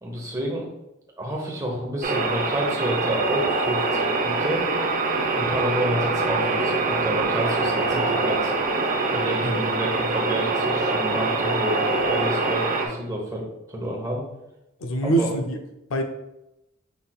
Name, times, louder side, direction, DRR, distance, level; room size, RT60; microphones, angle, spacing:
voice 1, 0.0-0.7 1.2-4.6 5.4-8.5 9.1-14.2 15.0-15.3, right 1 dB, 15° right, -1 dB, 1.0 m, -29 dB
sound 1, 2.0-12.9, right 3 dB, 40° right, 0.6 m, -24 dB
voice 2, 14.8-15.6 15.9-16.0, right 2 dB, 75° left, 5 dB, 0.6 m, -24 dB
6.0 x 3.4 x 2.3 m, 0.90 s
head